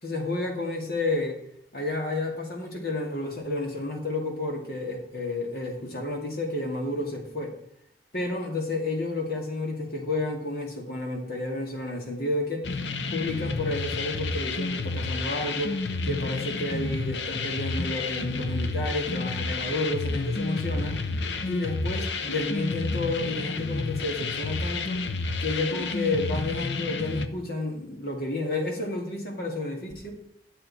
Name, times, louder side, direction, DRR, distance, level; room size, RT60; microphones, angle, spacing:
voice 1, 0.0-1.4 1.7-7.6 8.1-12.7 13.1-21.0 21.4-25.0 25.4-30.1, left 2 dB, 60° left, 2 dB, 2.3 m, -31 dB
sound 1, 12.6-27.3, left 3 dB, 85° left, 0.8 m, -30 dB
11.0 x 7.5 x 4.2 m, 0.71 s
head